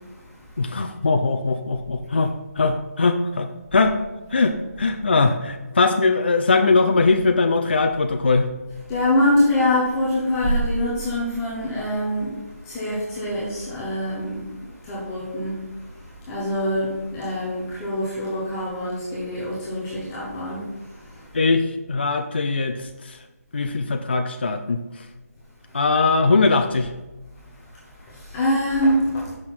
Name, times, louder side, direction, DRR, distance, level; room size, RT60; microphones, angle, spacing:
voice 1, 0.6-4.0 4.3-8.5 21.3-23.2 23.5-24.8 25.7-26.9, left 3 dB, 40° left, 6 dB, 0.4 m, -21 dB
voice 2, 8.9-12.3 12.6-14.4 14.8-15.6 16.3-20.6 21.1-21.2 28.0-29.2, left 1 dB, 10° left, -8 dB, 0.8 m, -24 dB
6.6 x 6.0 x 4.2 m, 1.1 s
figure-of-eight pair, 175°, 8 cm